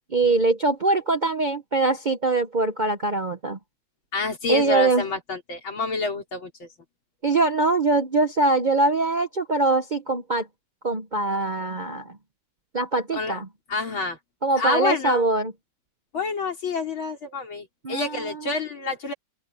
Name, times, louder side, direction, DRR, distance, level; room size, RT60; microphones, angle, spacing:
voice 1, 0.1-3.6 4.5-5.1 7.2-10.5 10.8-12.2 12.7-13.5 14.4-15.5 17.8-18.4, right 3 dB, 90° right, 0.4 m, -23 dB
voice 2, 4.1-6.7 13.1-13.4 13.7-14.2 14.6-15.2 16.1-19.1, left 3 dB, 65° left, 4.7 m, -28 dB
open air
omnidirectional pair, 2.4 m